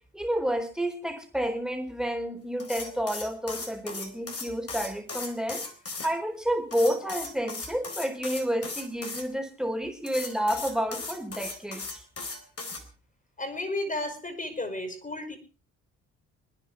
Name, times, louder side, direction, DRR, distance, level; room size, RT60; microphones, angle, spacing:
voice 1, 0.1-5.6 6.0-12.1, equal, ahead, 4 dB, 4.3 m, -30 dB
sound 1, 2.6-6.1 6.7-9.2 10.0-12.8, left 3 dB, 40° left, 4.0 m, -37 dB
voice 2, 13.4-15.4, left 2 dB, 20° left, 8 dB, 5.2 m, -33 dB
27.0 x 10.0 x 4.6 m, 0.37 s
hypercardioid pair, 50°, 37 cm